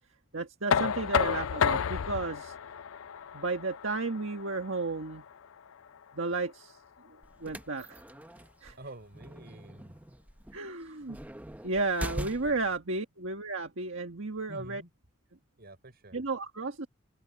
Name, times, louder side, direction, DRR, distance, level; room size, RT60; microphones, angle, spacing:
voice 1, 0.3-2.5 3.3-5.2 6.1-6.8 7.0-8.0 8.6-8.8 10.5-11.2 11.6-14.8 16.1-16.9, right 3 dB, 70° right, 1.7 m, -33 dB
Knock, 0.7-6.5, left 7 dB, 85° left, 0.4 m, -32 dB
sound 1, 7.2-12.8, right 1 dB, 10° right, 0.7 m, -42 dB
voice 2, 8.8-10.0 12.4-12.6 14.5-14.9 15.6-16.2, right 1 dB, 50° right, 5.7 m, -48 dB
open air
head